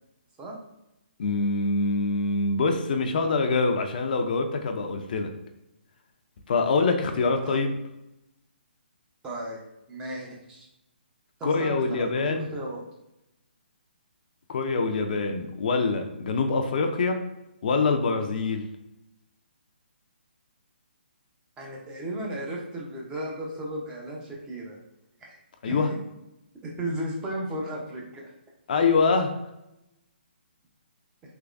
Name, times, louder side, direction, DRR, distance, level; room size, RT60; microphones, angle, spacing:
voice 1, 1.2-5.3 6.5-7.8 11.4-12.5 14.5-17.2 17.6-18.6 25.6-25.9 28.7-29.3, left 4 dB, 50° left, 5 dB, 0.4 m, -25 dB
voice 2, 9.2-9.6 9.9-10.7 11.4-12.8 21.6-24.8 25.2-25.8 26.6-28.3, right 1 dB, 15° right, -2 dB, 0.6 m, -35 dB
3.4 x 3.0 x 2.4 m, 0.90 s
hypercardioid pair, 145°, 6 cm